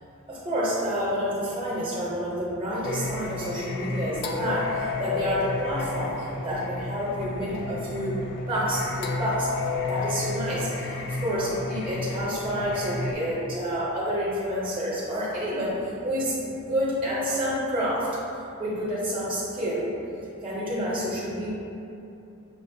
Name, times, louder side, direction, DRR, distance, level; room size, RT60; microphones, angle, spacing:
voice 1, 0.3-9.5 9.9-18.1 18.6-19.9 20.4-21.5, equal, 25° right, -7 dB, 0.6 m, -29 dB
Singing, 2.8-13.1, left 3 dB, 50° left, 0.3 m, -32 dB
6.0 x 2.1 x 2.6 m, 2.8 s
head